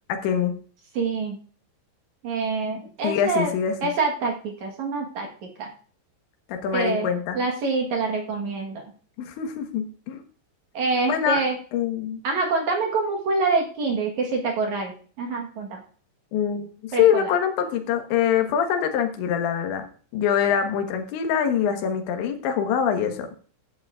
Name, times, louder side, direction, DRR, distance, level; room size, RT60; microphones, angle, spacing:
voice 1, 0.1-0.5 3.0-3.8 6.5-7.4 9.2-10.2 11.1-11.4 11.7-12.2 16.3-19.9 20.1-23.3, left 8 dB, 75° left, 4 dB, 3.5 m, -24 dB
voice 2, 0.9-1.4 2.2-3.5 3.8-5.7 6.7-7.1 7.4-8.9 10.7-11.6 12.2-15.8 16.9-17.3, right 3 dB, 70° right, 1 dB, 1.8 m, -26 dB
14.0 x 10.5 x 2.5 m, 0.42 s
omnidirectional pair, 5.5 m